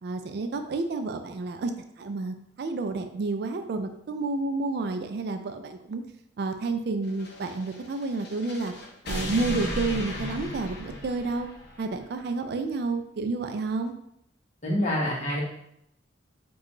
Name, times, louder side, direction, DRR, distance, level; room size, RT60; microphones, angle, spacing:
voice 1, 0.0-1.7 2.0-6.0 6.4-8.7 9.1-11.5 11.8-13.9, right 3 dB, 55° right, 7 dB, 0.3 m, -30 dB
sound 1, 7.1-11.8, left 1 dB, 55° left, 0.6 m, -36 dB
voice 2, 14.6-15.4, equal, 40° left, -4 dB, 1.0 m, -26 dB
4.8 x 2.3 x 3.0 m, 0.76 s
head